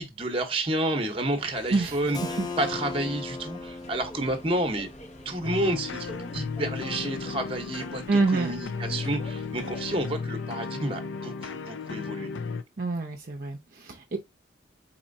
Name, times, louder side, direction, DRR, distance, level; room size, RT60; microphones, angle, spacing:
voice 1, 0.0-4.9 5.2-12.3, right 1 dB, 30° right, 0.9 m, -30 dB
sound 1, 1.4-10.2, equal, 35° left, 0.7 m, -46 dB
Keyboard (musical), 2.1-7.7, left 3 dB, 20° left, 0.3 m, -40 dB
sound 2, 5.4-12.6, left 4 dB, 85° left, 0.5 m, -35 dB
voice 2, 8.1-8.5 12.8-14.2, right 3 dB, 50° right, 0.6 m, -26 dB
4.3 x 4.2 x 2.6 m
head